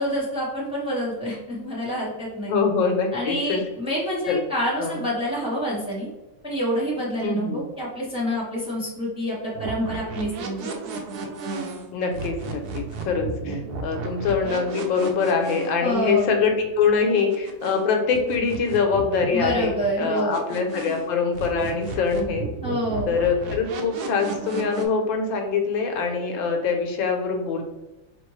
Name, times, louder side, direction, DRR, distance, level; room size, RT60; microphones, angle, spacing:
voice 1, 0.0-2.5 3.1-6.1 6.4-10.7 15.8-16.3 19.3-20.4 22.6-23.1, equal, 5° right, -6 dB, 1.0 m, -27 dB
voice 2, 2.5-3.6 4.3-4.4 4.8-5.0 7.2-7.6 11.9-22.4 23.1-27.6, left 5 dB, 85° left, 3 dB, 1.5 m, -24 dB
sound 1, 9.5-17.8 18.1-21.1 21.3-24.8, right 3 dB, 65° right, 1.0 m, -34 dB
4.4 x 3.4 x 3.1 m, 1.0 s
omnidirectional pair, 2.0 m